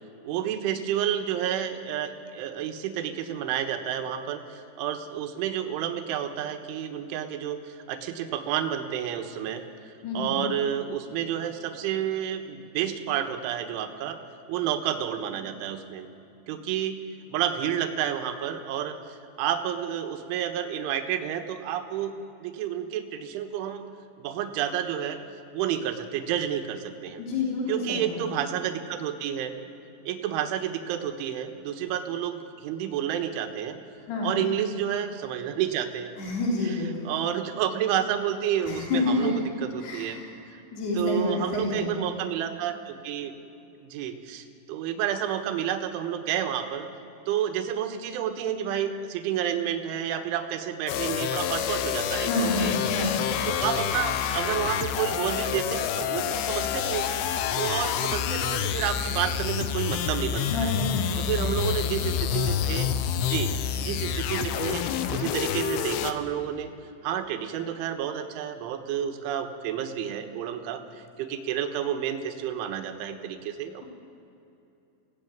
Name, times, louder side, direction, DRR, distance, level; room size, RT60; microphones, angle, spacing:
voice 1, 0.2-9.6 10.2-14.2 14.5-16.1 16.5-23.9 24.2-25.2 25.5-27.2 27.7-29.5 30.1-33.8 34.2-36.2 36.7-36.8 37.1-40.2 41.0-43.3 43.8-46.9 47.3-52.7 53.5-57.1 57.6-60.7 61.2-62.9 63.2-63.5 63.8-66.7 67.0-73.8, right 9 dB, 75° right, 6 dB, 3.7 m, -30 dB
voice 2, 10.0-10.4 27.2-28.2 34.1-34.4 36.2-37.1 38.6-39.3 39.8-40.4 40.7-42.0 52.2-53.2 60.5-61.5, left 2 dB, 55° left, -4 dB, 5.5 m, -28 dB
sound 1, 50.9-66.1, left 9 dB, 85° left, 3.4 m, -28 dB
26.0 x 17.0 x 9.3 m, 2.8 s
omnidirectional pair, 5.7 m